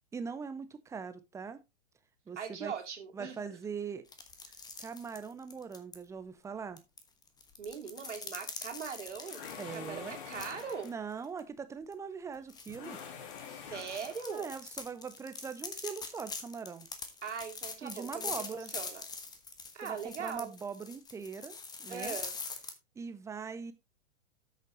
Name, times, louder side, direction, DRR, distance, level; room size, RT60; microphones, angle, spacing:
voice 1, 0.1-1.6 2.3-2.7 3.1-4.0 4.8-6.8 9.6-10.2 10.8-13.0 14.3-16.9 17.8-18.7 19.8-22.2 23.0-23.7, right 5 dB, 10° right, 0.8 m, -41 dB
voice 2, 2.4-3.4 7.6-9.4 9.7-10.9 13.5-14.5 17.2-19.0 19.7-20.5 21.9-22.3, right 6 dB, 65° right, 2.8 m, -40 dB
sound 1, 4.1-5.9 6.8-10.9 11.2-11.4 11.9-12.0 12.5-22.7, left 4 dB, 10° left, 1.2 m, -43 dB
sound 2, 9.2-11.1 12.7-14.4, left 7 dB, 40° left, 2.5 m, -46 dB
13.0 x 6.7 x 3.0 m
figure-of-eight pair, 110°, 38 cm